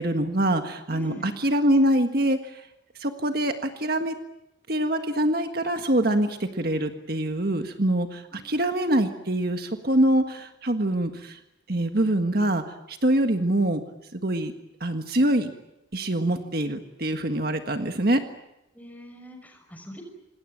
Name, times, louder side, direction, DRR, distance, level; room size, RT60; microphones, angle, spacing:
voice 1, 0.0-2.6 3.0-4.1 4.7-11.4 11.7-13.8 14.1-14.5 14.8-15.5 15.9-18.2, right 1 dB, 50° right, 6 dB, 1.6 m, -24 dB
voice 2, 0.9-1.3 8.3-8.7 18.7-20.0, equal, 10° left, 4 dB, 5.9 m, -42 dB
27.0 x 20.0 x 9.0 m, 0.90 s
head